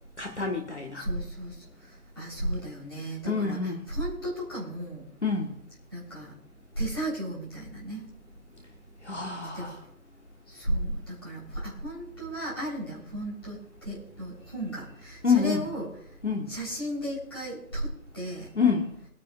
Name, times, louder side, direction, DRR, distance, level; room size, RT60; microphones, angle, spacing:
voice 1, 0.2-1.1 3.3-3.8 5.2-5.5 9.0-9.8 15.2-15.7 16.2-16.5 18.5-18.9, left 5 dB, 45° left, 1 dB, 1.6 m, -27 dB
voice 2, 1.0-1.9 2.2-5.0 5.9-6.3 6.8-8.0 9.5-9.7 10.5-15.9 16.5-18.5, right 1 dB, 15° left, -7 dB, 3.9 m, -34 dB
23.5 x 9.8 x 2.5 m, 0.70 s
figure-of-eight pair, 175°, 47 cm